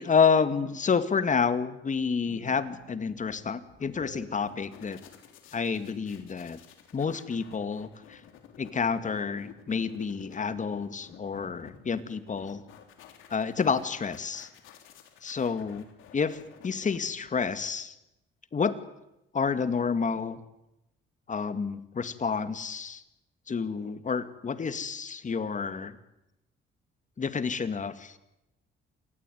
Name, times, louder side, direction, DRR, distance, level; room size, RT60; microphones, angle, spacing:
voice 1, 0.0-5.0 5.5-6.6 6.9-8.2 8.6-12.6 13.3-14.5 15.2-15.8 16.1-16.4 16.6-17.9 18.5-18.8 19.3-20.4 21.3-23.0 23.5-26.0 27.2-28.2, left 5 dB, 40° left, 12 dB, 2.2 m, -29 dB
sound 1, 2.2-4.5, right 7 dB, 90° right, 5.2 m, -50 dB
sound 2, 3.4-17.7, left 8 dB, 85° left, 3.6 m, -52 dB
27.5 x 19.5 x 9.5 m, 0.90 s
cardioid pair, 90°, 20 cm